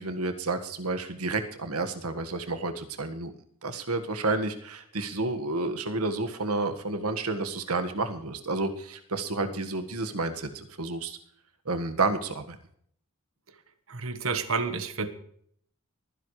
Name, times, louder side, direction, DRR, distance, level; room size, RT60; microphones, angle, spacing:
voice 1, 0.0-3.3 3.6-11.2 11.6-12.6, right 3 dB, 85° right, 7 dB, 1.7 m, -30 dB
voice 2, 13.9-15.1, right 4 dB, 65° right, 10 dB, 1.3 m, -30 dB
23.0 x 10.5 x 3.2 m, 0.64 s
head